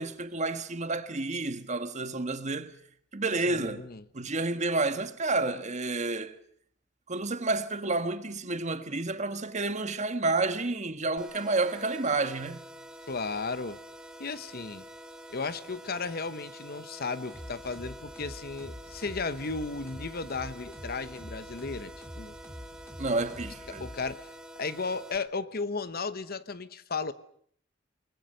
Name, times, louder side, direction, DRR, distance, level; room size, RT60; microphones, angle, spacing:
voice 1, 0.0-2.7 3.1-3.8 4.1-6.4 7.1-12.6 23.0-23.8, right 3 dB, 40° right, 1.5 m, -30 dB
voice 2, 3.4-4.0 13.1-13.8 14.2-14.9 15.3-22.4 23.7-24.3 24.6-27.1, left 4 dB, 50° left, 1.1 m, -35 dB
sound 1, 11.2-25.2, equal, 5° right, 2.1 m, -47 dB
sound 2, 17.3-24.5, equal, 15° left, 3.6 m, -46 dB
29.0 x 20.5 x 6.7 m
head